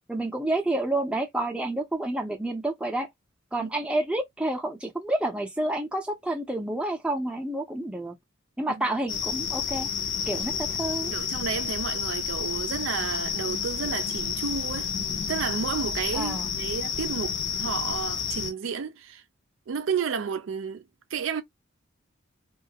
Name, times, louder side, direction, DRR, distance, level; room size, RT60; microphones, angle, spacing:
voice 1, 0.1-3.1 3.5-8.1 8.6-9.9 10.3-11.1 16.1-16.5, right 1 dB, 5° right, 0.5 m, -29 dB
sound 1, 9.1-18.5, left 7 dB, 60° left, 0.5 m, -30 dB
voice 2, 11.1-14.9 15.3-19.2 19.7-20.9 21.1-21.4, right 6 dB, 70° right, 0.4 m, -31 dB
2.3 x 2.0 x 2.7 m
head